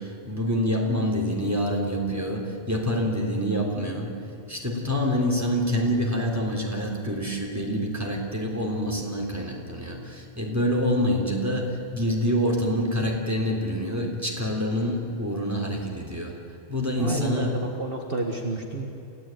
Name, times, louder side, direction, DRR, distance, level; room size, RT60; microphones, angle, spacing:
voice 1, 0.0-4.2 4.5-16.4 16.7-17.7, equal, 15° right, 0 dB, 3.6 m, -26 dB
voice 2, 17.0-18.9, right 2 dB, 55° right, 2 dB, 2.0 m, -30 dB
28.0 x 16.5 x 9.1 m, 2.8 s
omnidirectional pair, 1.1 m